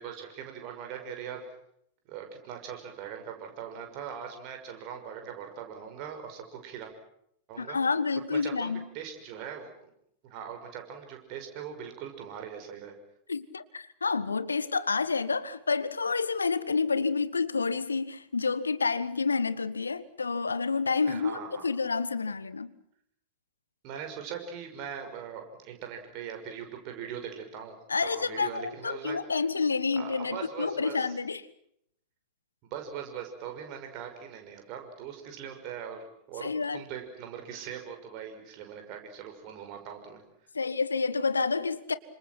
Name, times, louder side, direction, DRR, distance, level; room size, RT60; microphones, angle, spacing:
voice 1, 0.0-1.4 2.1-6.9 7.5-7.8 8.3-9.7 10.2-12.9 21.1-21.7 23.8-27.8 28.0-29.2 29.9-31.2 32.6-36.0 36.3-40.2, right 8 dB, 45° right, 6.0 m, -41 dB
voice 2, 7.6-8.9 13.3-22.7 27.9-31.5 36.4-36.8 40.5-41.9, left 4 dB, 75° left, 1.1 m, -29 dB
29.5 x 26.0 x 6.1 m
figure-of-eight pair, 90°, 0 cm